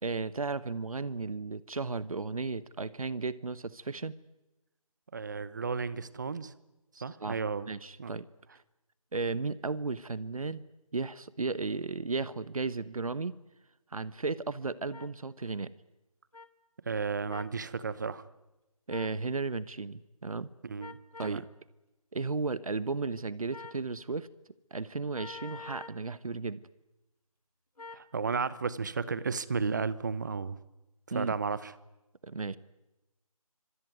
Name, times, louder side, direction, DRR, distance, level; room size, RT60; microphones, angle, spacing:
voice 1, 0.0-4.1 6.9-7.4 7.7-8.2 9.1-10.6 10.9-13.4 13.9-15.7 18.9-20.5 21.2-21.4 22.1-24.3 24.7-26.6 31.1-31.3 32.2-32.6, right 4 dB, 65° right, 16 dB, 1.1 m, -34 dB
voice 2, 5.1-6.5 7.0-7.7 8.0-8.1 16.9-18.2 20.6-21.4 27.9-30.6 31.1-31.7, right 5 dB, 30° right, 17 dB, 1.0 m, -33 dB
sound 1, 14.9-15.1 16.3-16.5 17.3-17.5 18.9-19.2 20.8-21.4 23.5-23.8 25.1-26.0 27.8-28.1, left 4 dB, 90° left, 2.7 m, -46 dB
25.5 x 24.5 x 9.5 m, 1.0 s
figure-of-eight pair, 165°, 19 cm